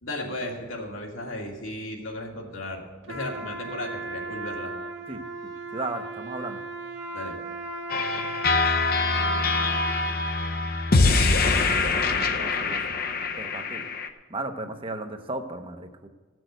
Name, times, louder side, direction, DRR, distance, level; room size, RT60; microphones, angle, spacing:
voice 1, 0.0-4.7 7.1-7.4 12.4-12.5, left 1 dB, 80° left, 0 dB, 2.2 m, -35 dB
Trumpet, 3.0-10.1, right 2 dB, 65° right, 1.7 m, -36 dB
voice 2, 5.7-6.6 12.3-12.8 13.4-13.8 14.3-16.1, right 2 dB, 25° right, 6 dB, 0.8 m, -34 dB
sound 1, 7.9-14.1, left 3 dB, 50° left, 0.7 m, -24 dB
15.5 x 6.2 x 7.9 m, 1.3 s
head